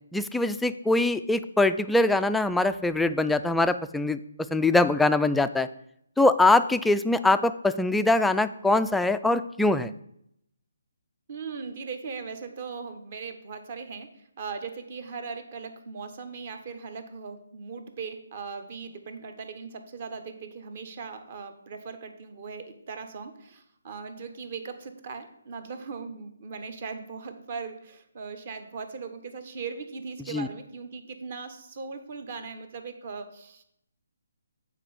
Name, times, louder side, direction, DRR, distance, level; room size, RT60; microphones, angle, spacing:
voice 1, 0.1-4.2 4.5-5.7 6.2-9.9 30.3-30.5, left 2 dB, 5° left, 10 dB, 0.3 m, -23 dB
voice 2, 11.3-14.1 14.4-33.6, right 5 dB, 45° right, 8 dB, 1.2 m, -39 dB
8.2 x 4.3 x 7.1 m, 0.74 s
figure-of-eight pair, 150°, 0 cm